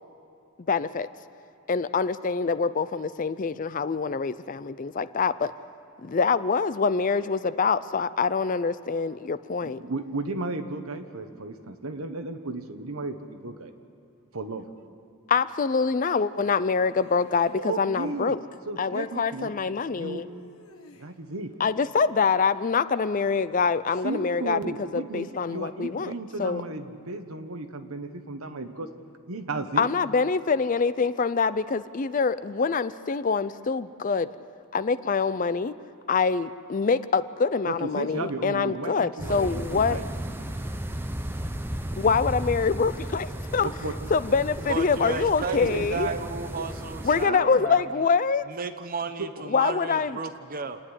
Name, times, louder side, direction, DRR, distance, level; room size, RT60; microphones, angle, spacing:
voice 1, 0.7-1.1 1.7-5.5 6.0-9.8 15.3-18.4 18.8-20.3 21.6-26.1 26.4-26.6 29.8-34.3 34.7-35.7 36.1-40.0 42.0-43.7 44.1-46.1 47.0-48.5 49.5-50.2, left 5 dB, 35° left, 15 dB, 0.4 m, -25 dB
voice 2, 9.6-13.7 14.3-14.6 17.6-18.4 18.7-19.5 19.9-20.2 21.0-21.5 24.0-28.9 29.3-29.9 37.6-40.1 43.6-43.9 45.5-46.6 47.1-47.5 49.2-49.3, right 3 dB, 75° right, 7 dB, 1.3 m, -34 dB
sound 1, 16.3-17.6 20.2-21.4, left 1 dB, 75° left, 1.4 m, -53 dB
sound 2, 39.2-47.3, right 1 dB, 10° right, 0.7 m, -34 dB
voice 3, 44.6-47.8 48.5-50.8, right 4 dB, 40° right, 10 dB, 0.9 m, -33 dB
28.0 x 9.9 x 9.9 m, 2.7 s
head